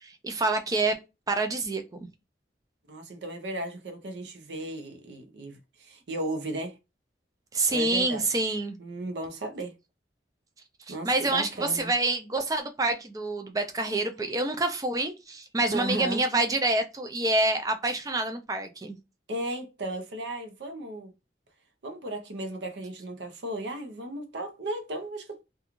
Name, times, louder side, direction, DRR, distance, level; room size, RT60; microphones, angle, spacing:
voice 1, 0.0-1.0 1.3-1.8 7.5-8.8 10.9-19.0, right 2 dB, 20° right, 0.4 m, -27 dB
voice 2, 2.9-6.8 7.7-8.5 8.8-9.7 10.9-11.9 15.7-16.2 19.3-21.1 21.8-25.4, right 1 dB, 75° right, 0.6 m, -35 dB
2.4 x 2.3 x 2.9 m
head